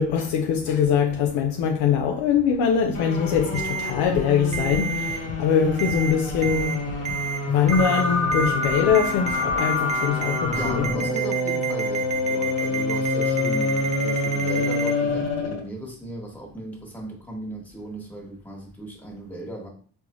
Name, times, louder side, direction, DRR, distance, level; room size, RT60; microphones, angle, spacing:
voice 1, 0.0-7.0 7.5-10.9, left 7 dB, 90° left, 0.5 m, -22 dB
sound 1, 2.9-15.7, left 2 dB, 40° left, 1.2 m, -27 dB
sound 2, 3.3-9.6, left 1 dB, 45° right, 0.9 m, -37 dB
Ringtone, 3.5-3.9 4.5-5.2 5.8-6.1 6.4-6.8 7.1-7.4 7.7-8.0 8.3-14.9, right 8 dB, 20° right, 0.3 m, -30 dB
voice 2, 10.5-19.7, right 1 dB, 5° left, 1.2 m, -36 dB
3.8 x 2.1 x 2.9 m
cardioid pair, 75°, 38 cm